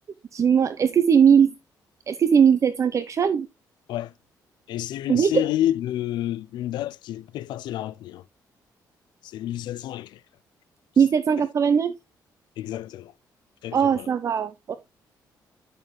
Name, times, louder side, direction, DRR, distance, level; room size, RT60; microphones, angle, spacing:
voice 1, 0.3-1.6 2.1-3.5 5.1-5.4 11.0-11.9 13.7-14.8, right 7 dB, 45° right, 0.6 m, -19 dB
voice 2, 4.7-8.2 9.2-10.2 11.4-11.5 12.6-13.1 13.6-14.1, left 13 dB, 85° left, 0.4 m, -29 dB
10.5 x 6.5 x 3.1 m
cardioid pair, 115°, 7 cm